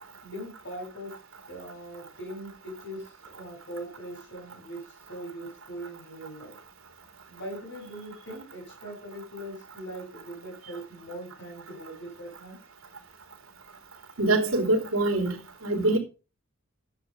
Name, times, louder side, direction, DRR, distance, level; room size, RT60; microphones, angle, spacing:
voice 1, 0.2-1.1 1.5-6.6 7.3-12.6, right 1 dB, 65° left, 7.3 m, -41 dB
voice 2, 14.2-15.3 15.6-16.0, right 2 dB, 90° right, 3.3 m, -23 dB
10.5 x 7.7 x 5.4 m
head